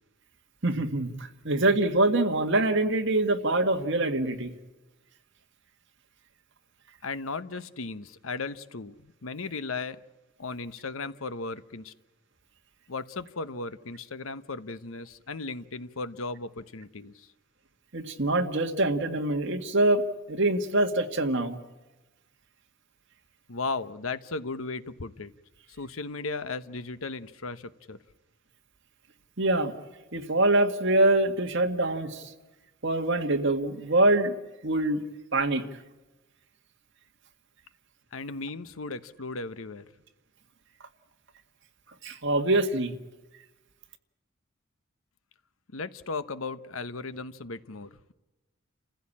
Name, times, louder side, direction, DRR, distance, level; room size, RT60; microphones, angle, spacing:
voice 1, 0.6-4.5 17.9-20.0 20.3-21.6 29.4-29.7 30.1-32.3 32.8-34.3 34.6-35.0 35.3-35.6 42.0-42.9, right 2 dB, 60° right, 4 dB, 1.9 m, -24 dB
voice 2, 7.0-10.0 10.4-11.9 12.9-17.3 23.5-25.3 25.7-28.0 38.1-39.9 45.7-48.1, left 3 dB, 85° left, 13 dB, 1.0 m, -36 dB
29.0 x 15.5 x 8.6 m, 1.1 s
head